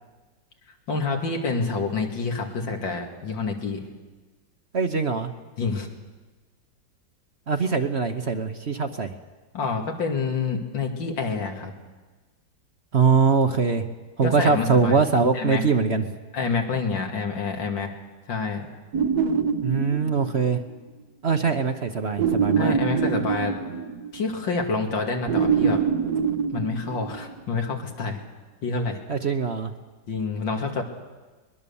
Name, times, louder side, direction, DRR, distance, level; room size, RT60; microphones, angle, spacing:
voice 1, 0.9-3.8 5.6-5.9 9.5-11.7 14.2-15.0 15.3-15.6 16.3-17.9 18.3-18.7 22.6-23.6 24.1-25.8 26.5-28.2 28.6-29.0 30.1-30.8, left 4 dB, 90° left, 2 dB, 3.1 m, -27 dB
voice 2, 4.7-5.3 7.5-9.1 12.9-13.8 14.2-16.0 19.6-20.6 21.2-22.8 29.1-29.7, right 5 dB, 40° right, 7 dB, 1.1 m, -22 dB
sound 1, 18.9-20.6 22.2-24.3 25.3-27.4, right 6 dB, 60° right, 1.5 m, -25 dB
22.5 x 21.0 x 7.2 m, 1.3 s
omnidirectional pair, 2.0 m